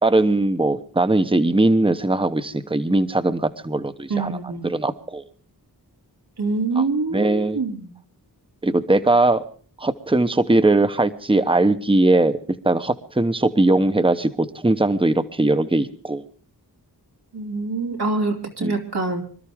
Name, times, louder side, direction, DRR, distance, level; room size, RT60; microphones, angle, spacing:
voice 1, 0.0-4.4 4.6-5.2 6.8-6.9 7.1-7.6 8.6-9.4 9.8-12.4 12.6-16.2 18.6-18.8, right 2 dB, 15° right, 10 dB, 1.0 m, -20 dB
voice 2, 4.1-4.7 6.4-7.9 17.3-19.2, right 3 dB, 85° right, 1 dB, 3.0 m, -25 dB
26.0 x 13.0 x 3.6 m, 0.43 s
wide cardioid pair, 70°, 38 cm